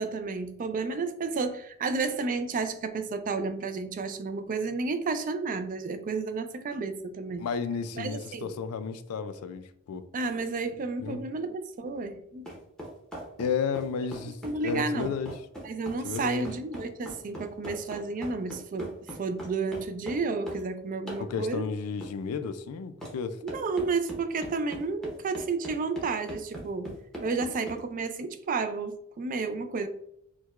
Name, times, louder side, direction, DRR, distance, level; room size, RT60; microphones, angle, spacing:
voice 1, 0.0-7.4 7.9-8.5 10.1-12.5 14.4-15.1 15.6-21.7 23.4-26.9 27.2-29.9, right 4 dB, 40° right, 9 dB, 0.3 m, -31 dB
voice 2, 7.4-10.0 11.0-11.2 13.4-15.3 16.0-16.5 21.2-23.4, left 6 dB, 85° left, 11 dB, 0.4 m, -32 dB
sound 1, 12.5-20.7 21.1-21.3 22.0-22.2 23.0-23.2 23.5-27.8, equal, 5° left, 0.8 m, -41 dB
4.5 x 2.2 x 2.3 m, 0.73 s
head